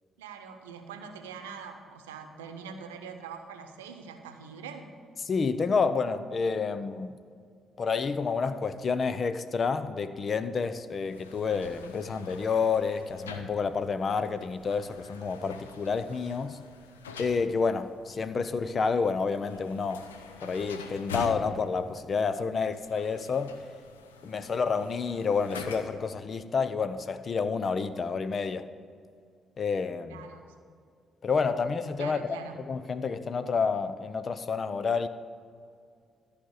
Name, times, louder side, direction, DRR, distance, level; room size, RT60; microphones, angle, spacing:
voice 1, 0.2-4.8 30.1-30.5 32.0-32.6, right 6 dB, 85° right, 0.8 m, -43 dB
voice 2, 5.3-7.2 7.8-16.6 17.2-20.1 20.4-23.5 24.2-28.7 29.6-30.2 31.2-32.4 32.7-35.1, left 5 dB, 45° left, 0.6 m, -29 dB
sound 1, 11.1-26.1, left 5 dB, 90° left, 0.6 m, -45 dB
13.0 x 5.0 x 8.1 m
hypercardioid pair, 45°, 0 cm